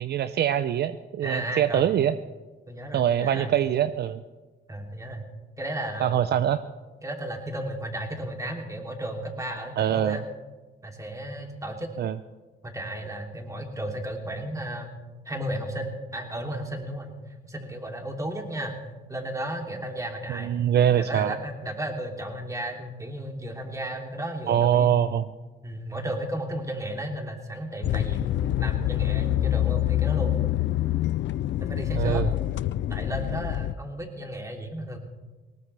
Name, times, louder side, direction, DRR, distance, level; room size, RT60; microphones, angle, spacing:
voice 1, 0.0-2.2 2.9-4.2 6.0-6.6 9.8-10.2 12.0-12.1 20.3-21.4 24.5-25.3 32.0-32.3, right 10 dB, 55° right, 13 dB, 0.5 m, -23 dB
voice 2, 1.2-1.9 2.7-3.5 4.7-5.3 5.6-6.3 7.0-10.2 10.8-11.9 12.6-14.9 15.2-17.1 17.4-18.8 19.1-20.6 20.9-24.9 25.6-30.4 31.6-32.3 32.9-35.0, right 1 dB, 15° right, 2 dB, 2.9 m, -34 dB
sound 1, 27.8-33.7, left 13 dB, 65° left, 0.5 m, -26 dB
19.5 x 18.5 x 3.3 m, 1.3 s
cardioid pair, 90°, 20 cm